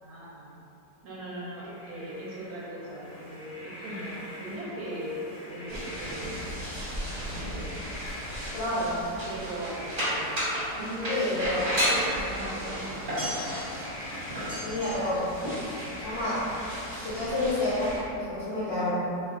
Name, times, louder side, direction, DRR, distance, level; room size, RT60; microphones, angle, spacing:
voice 1, 0.0-0.5 1.0-6.6 7.2-7.7 9.3-13.2, right 1 dB, 70° right, -6 dB, 1.0 m, -38 dB
sound 1, 1.4-18.0, left 1 dB, 15° right, 1.2 m, -44 dB
sound 2, 5.7-18.0, equal, 35° right, 1.0 m, -34 dB
voice 2, 8.5-9.0 11.1-11.6 14.6-15.3 16.0-16.5 17.0-19.0, left 1 dB, 60° left, -11 dB, 0.7 m, -29 dB
2.7 x 2.3 x 3.5 m, 2.8 s
omnidirectional pair, 1.9 m